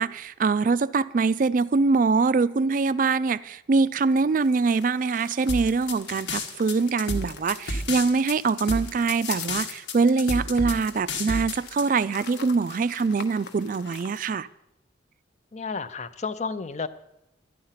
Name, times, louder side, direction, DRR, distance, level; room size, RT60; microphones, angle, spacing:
voice 1, 0.0-14.5, right 4 dB, 45° right, 0.3 m, -23 dB
sound 1, 4.0-14.3, left 6 dB, 65° left, 1.1 m, -44 dB
sound 2, 5.5-11.8, left 2 dB, 80° left, 1.6 m, -30 dB
voice 2, 15.5-16.9, left 4 dB, 35° left, 0.6 m, -31 dB
12.0 x 10.0 x 5.7 m
head